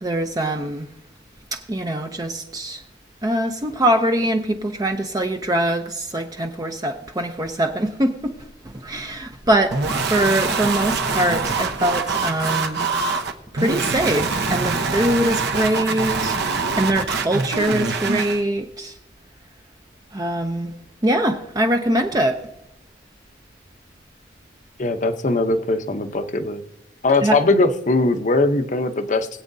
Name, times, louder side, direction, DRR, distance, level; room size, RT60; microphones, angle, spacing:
voice 1, 0.0-0.9 1.5-2.8 3.2-8.3 8.7-12.9 13.5-16.5 16.8-18.9 20.1-20.7 21.0-22.4 27.2-27.4, right 1 dB, 20° right, 0.5 m, -23 dB
sound 1, 9.7-18.4, right 4 dB, 60° right, 0.9 m, -24 dB
voice 2, 24.8-26.6 27.0-29.3, left 2 dB, 40° left, 0.7 m, -20 dB
21.0 x 8.4 x 2.7 m
head